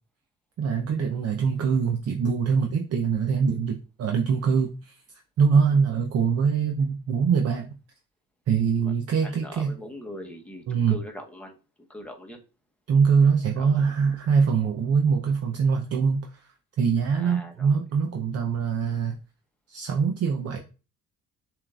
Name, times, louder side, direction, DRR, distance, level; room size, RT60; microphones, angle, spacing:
voice 1, 0.6-5.0 5.4-7.7 8.5-9.7 10.7-11.0 12.9-19.1 19.7-20.6, right 6 dB, 55° right, 2 dB, 0.7 m, -23 dB
voice 2, 9.2-11.6 11.9-12.4 13.6-13.9 17.1-17.7, left 1 dB, 5° left, 2 dB, 0.9 m, -41 dB
7.1 x 2.6 x 2.4 m, 0.34 s
cardioid pair, 90°, 30 cm